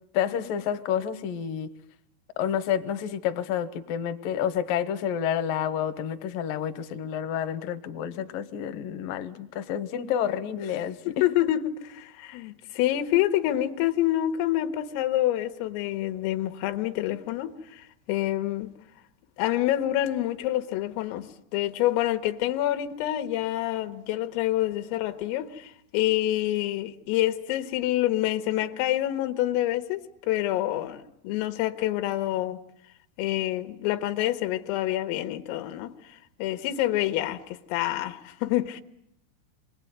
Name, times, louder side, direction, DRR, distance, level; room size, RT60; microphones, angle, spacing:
voice 1, 0.1-1.7 2.4-11.2, left 9 dB, 70° left, 2.2 m, -29 dB
voice 2, 11.2-18.7 19.4-32.6 33.2-38.8, left 14 dB, 90° left, 3.9 m, -27 dB
28.0 x 22.5 x 9.5 m
omnidirectional pair, 5.7 m